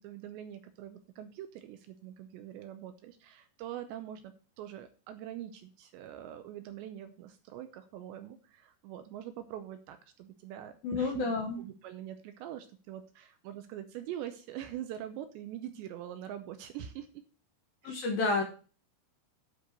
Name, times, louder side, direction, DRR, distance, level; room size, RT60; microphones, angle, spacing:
voice 1, 0.0-11.2 11.6-17.1 17.8-18.1, right 11 dB, 80° right, 8 dB, 2.7 m, -44 dB
voice 2, 10.8-11.6 17.8-18.4, left 3 dB, 65° left, 2 dB, 2.4 m, -30 dB
10.5 x 4.7 x 6.7 m, 0.36 s
omnidirectional pair, 5.6 m